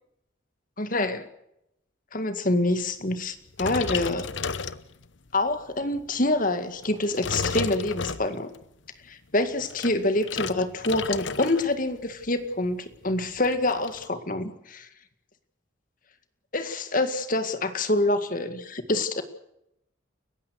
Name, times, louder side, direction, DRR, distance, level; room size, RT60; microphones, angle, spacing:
voice 1, 0.8-1.3 2.1-4.3 5.3-8.5 9.1-14.9 16.5-19.2, left 2 dB, 40° left, 10 dB, 2.1 m, -26 dB
sound 1, 3.5-5.3 5.8-6.1 6.8-8.6 9.5-11.7 12.0-12.3 12.6-12.7 12.9-14.0, left 5 dB, 65° left, 0.9 m, -32 dB
30.0 x 16.0 x 6.6 m, 0.81 s
head